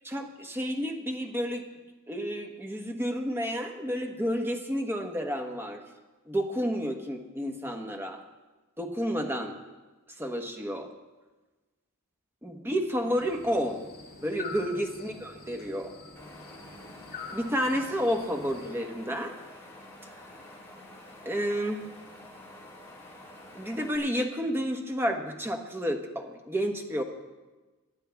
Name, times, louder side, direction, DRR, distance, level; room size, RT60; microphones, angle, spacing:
voice 1, 0.1-1.6 2.1-5.8 6.3-8.2 8.8-9.5 10.2-10.9 12.4-13.8 14.2-15.9 17.3-19.3 21.2-21.8 23.5-27.0, equal, 10° right, 3 dB, 1.2 m, -30 dB
sound 1, 13.2-18.7, left 4 dB, 45° left, 2.0 m, -45 dB
Wind, 16.2-24.0, left 1 dB, 10° left, 3.0 m, -48 dB
19.5 x 11.0 x 3.5 m, 1.2 s
head